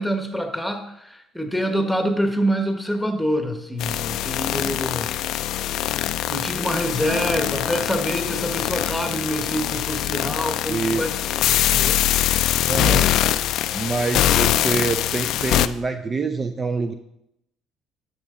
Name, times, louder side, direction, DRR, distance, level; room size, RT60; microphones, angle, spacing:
voice 1, 0.0-5.1 6.3-11.2 11.7-12.0, equal, ahead, 5 dB, 1.3 m, -26 dB
sound 1, 3.8-15.7, left 12 dB, 70° left, 0.3 m, -23 dB
Acoustic guitar, 7.0-10.8, left 3 dB, 80° right, 2.3 m, -37 dB
voice 2, 10.7-11.1 12.7-13.1 13.7-16.9, right 4 dB, 30° right, 8 dB, 0.5 m, -25 dB
10.5 x 6.3 x 3.8 m, 0.82 s
supercardioid pair, 90°, 0 cm